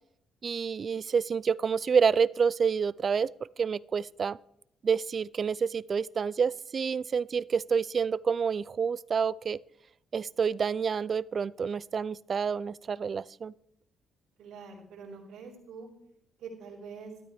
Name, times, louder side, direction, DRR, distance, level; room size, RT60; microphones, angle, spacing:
voice 1, 0.4-3.3 3.6-4.4 4.8-9.6 10.1-13.5, right 6 dB, 45° right, 21 dB, 0.3 m, -28 dB
voice 2, 14.4-15.9 16.4-17.1, right 5 dB, 80° right, -5 dB, 4.2 m, -45 dB
13.5 x 12.5 x 3.5 m, 0.78 s
cardioid pair, 90°, 0 cm